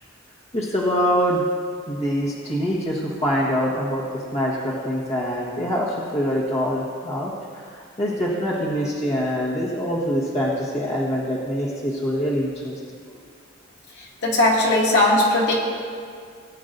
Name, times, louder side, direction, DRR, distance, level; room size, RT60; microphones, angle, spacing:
voice 1, 0.5-1.5 1.9-12.7, equal, 30° left, -6 dB, 1.4 m, -24 dB
voice 2, 14.2-15.6, left 1 dB, 60° left, -4 dB, 2.1 m, -18 dB
19.0 x 9.3 x 2.6 m, 2.2 s
head